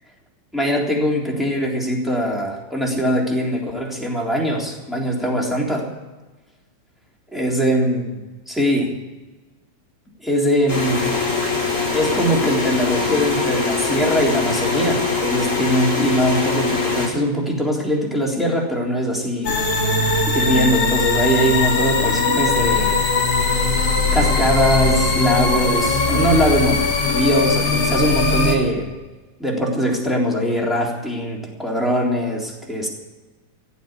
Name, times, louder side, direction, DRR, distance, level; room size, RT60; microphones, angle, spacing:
voice 1, 0.5-5.9 7.3-8.9 10.2-11.1 11.9-19.9 20.3-23.1 24.1-28.9 29.4-32.9, equal, ahead, -2 dB, 3.2 m, -21 dB
sound 1, 10.7-17.1, left 4 dB, 30° left, 5.2 m, -22 dB
sound 2, 19.4-28.5, left 3 dB, 50° left, 4.2 m, -19 dB
16.0 x 8.4 x 9.6 m, 1.2 s
omnidirectional pair, 3.6 m